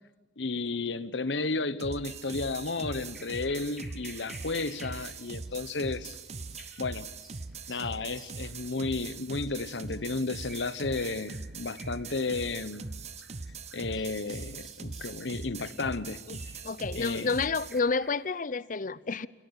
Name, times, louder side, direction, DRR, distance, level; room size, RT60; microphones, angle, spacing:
voice 1, 0.4-6.2 6.8-7.1 7.7-12.8 13.7-16.2 16.9-17.3, left 3 dB, 80° left, 1.1 m, -33 dB
sound 1, 1.8-17.8, right 3 dB, 40° right, 0.9 m, -41 dB
sound 2, 2.0-18.3, left 1 dB, ahead, 5.4 m, -54 dB
voice 2, 16.6-19.3, left 4 dB, 45° left, 0.7 m, -30 dB
29.5 x 17.0 x 8.3 m
head